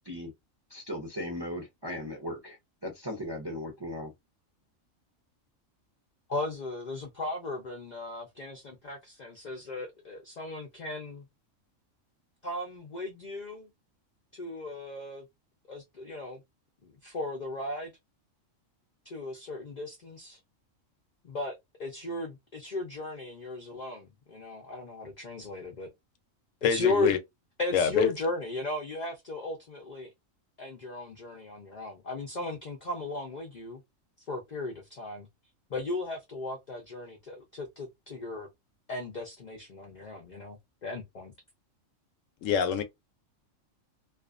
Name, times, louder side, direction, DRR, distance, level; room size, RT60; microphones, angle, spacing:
voice 1, 0.7-2.6 2.8-4.1, left 1 dB, 30° right, 0.5 m, -37 dB
voice 2, 6.3-11.3 12.4-13.7 14.3-15.3 15.7-16.4 16.8-17.9 19.0-20.4 21.2-21.5 21.8-25.9 26.6-27.1 27.6-30.1 30.6-33.8 34.3-35.3 35.7-38.5 38.9-41.3, left 2 dB, 55° left, 0.5 m, -36 dB
voice 3, 26.6-27.2 27.7-28.1 42.4-42.8, left 7 dB, 75° left, 0.9 m, -25 dB
2.4 x 2.4 x 2.4 m
omnidirectional pair, 1.4 m